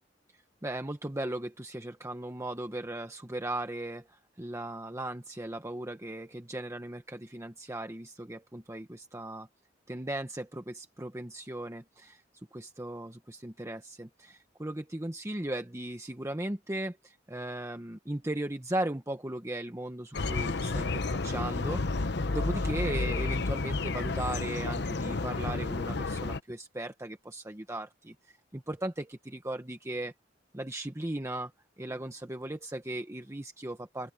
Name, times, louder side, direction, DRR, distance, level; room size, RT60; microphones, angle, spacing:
voice 1, 0.6-9.5 9.9-12.2 12.5-30.1 30.5-31.5 31.8-34.1, right 1 dB, 15° right, 1.0 m, -37 dB
sound 1, 20.1-26.4, left 3 dB, 65° left, 0.9 m, -31 dB
open air
head